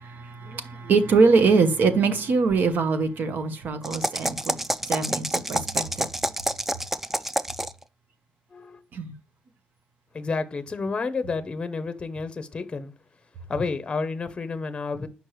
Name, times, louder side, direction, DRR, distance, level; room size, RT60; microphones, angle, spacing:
voice 1, 0.0-6.1 8.9-9.1, right 4 dB, 85° right, 0.9 m, -23 dB
sound 1, 3.8-7.8, right 1 dB, 10° right, 0.3 m, -28 dB
voice 2, 8.5-8.8 10.1-12.9 13.5-15.1, left 4 dB, 30° left, 0.6 m, -30 dB
6.3 x 5.3 x 3.0 m
wide cardioid pair, 145°, 3 cm